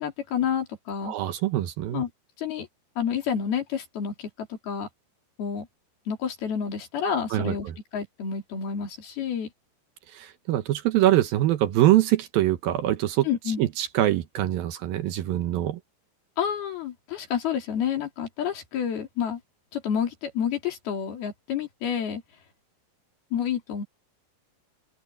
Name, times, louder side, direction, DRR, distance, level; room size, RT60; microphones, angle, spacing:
voice 1, 0.0-1.1 1.9-2.1 2.4-2.7 3.0-4.9 5.4-5.7 6.1-7.7 7.9-9.5 13.3-13.6 16.4-19.4 19.7-22.2 23.3-23.8, left 8 dB, 70° left, 5.2 m, -29 dB
voice 2, 1.0-2.0 7.3-7.7 10.1-13.3 13.6-15.8, right 14 dB, 70° right, 2.5 m, -24 dB
open air
omnidirectional pair, 4.7 m